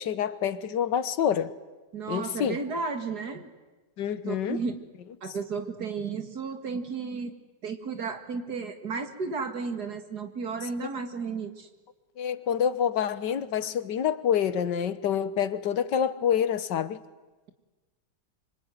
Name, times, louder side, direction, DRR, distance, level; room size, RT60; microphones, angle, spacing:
voice 1, 0.0-1.5 2.1-2.6 4.0-4.6 12.2-17.0, left 8 dB, 85° left, 1.7 m, -27 dB
voice 2, 1.9-3.5 4.3-4.8 5.2-7.3 7.6-11.7, right 5 dB, 65° right, 2.7 m, -33 dB
25.5 x 24.5 x 9.4 m
omnidirectional pair, 1.8 m